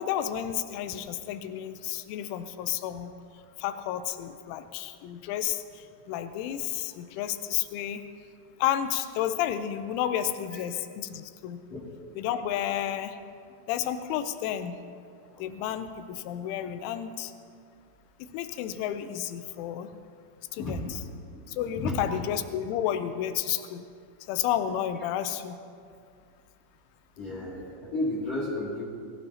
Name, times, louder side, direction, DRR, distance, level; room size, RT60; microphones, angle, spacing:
voice 1, 0.0-3.1 3.6-5.6 6.1-8.0 8.6-11.6 12.2-13.2 13.7-14.8 15.4-17.3 18.3-19.9 20.5-21.0 21.5-23.8 24.3-25.6, left 10 dB, 80° left, 9 dB, 3.0 m, -31 dB
voice 2, 20.6-21.0 21.3-22.2 27.2-28.8, left 1 dB, 40° left, -7 dB, 3.1 m, -33 dB
22.5 x 16.5 x 2.9 m, 2.3 s
omnidirectional pair, 5.8 m